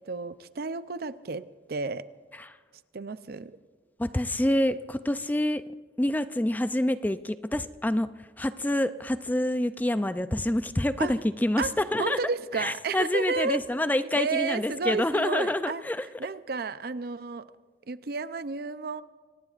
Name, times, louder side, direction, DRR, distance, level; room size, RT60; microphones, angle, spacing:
voice 1, 0.0-2.1 2.9-3.6 11.0-11.2 11.6-11.7 12.0-13.6 14.1-15.8 16.2-17.5 17.9-19.0, right 4 dB, 55° right, 14 dB, 0.5 m, -32 dB
voice 2, 4.0-5.6 6.0-12.2 12.5-16.1, left 1 dB, 10° left, 12 dB, 0.4 m, -27 dB
25.5 x 18.0 x 2.5 m, 1.5 s
head